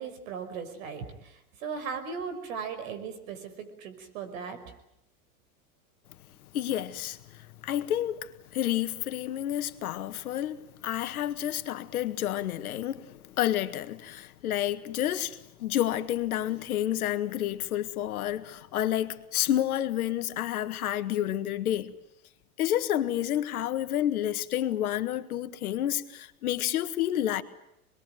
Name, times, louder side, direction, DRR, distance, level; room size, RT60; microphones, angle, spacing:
voice 1, 0.0-4.6, right 6 dB, 65° right, 5.5 m, -37 dB
voice 2, 6.5-21.9 22.6-27.4, left 12 dB, 80° left, 1.8 m, -30 dB
27.5 x 21.5 x 9.2 m
hypercardioid pair, 105°, 43 cm